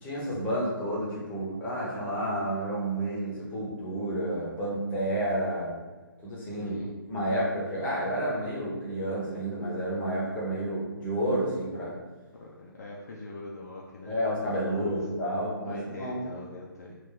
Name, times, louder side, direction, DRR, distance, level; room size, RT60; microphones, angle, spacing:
voice 1, 0.0-5.7 6.2-6.8 7.1-12.0 14.0-16.2, right 1 dB, 10° left, -6 dB, 0.9 m, -30 dB
voice 2, 6.6-6.9 12.4-14.1 14.7-15.0 15.6-17.0, left 2 dB, 45° left, -3 dB, 0.5 m, -43 dB
3.1 x 2.5 x 3.8 m, 1.2 s
figure-of-eight pair, 140°, 12 cm